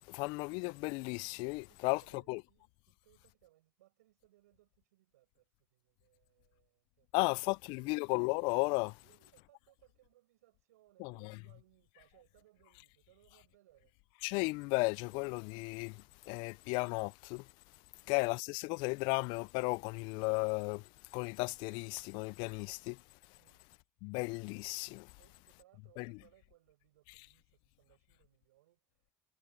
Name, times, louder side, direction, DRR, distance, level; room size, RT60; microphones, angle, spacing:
voice 1, 0.1-2.4 7.1-9.0 11.0-11.4 14.2-17.5 18.1-20.9 21.1-23.0 24.0-25.1 26.0-26.1, left 29 dB, 75° left, 0.4 m, -35 dB
voice 2, 1.7-7.9 9.0-14.0 17.9-18.2 23.4-23.6 25.2-29.1, right 16 dB, 85° right, 5.3 m, -68 dB
hypercardioid pair, 60°, 8 cm